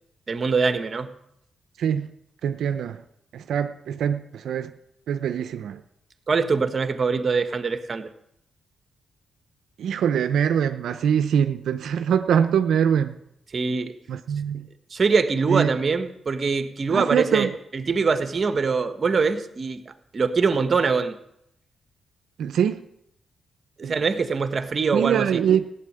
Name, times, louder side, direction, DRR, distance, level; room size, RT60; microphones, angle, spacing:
voice 1, 0.3-1.1 6.3-8.1 13.5-13.9 14.9-21.2 23.8-25.4, right 4 dB, 45° right, 9 dB, 1.4 m, -23 dB
voice 2, 2.4-3.0 3.3-4.7 5.1-5.8 9.8-13.2 14.1-14.7 15.5-15.7 16.9-17.5 22.4-22.8 23.8-24.0 24.9-25.6, right 8 dB, 80° right, 10 dB, 0.6 m, -23 dB
15.5 x 8.3 x 9.8 m, 0.77 s
cardioid pair, 80°, 0 cm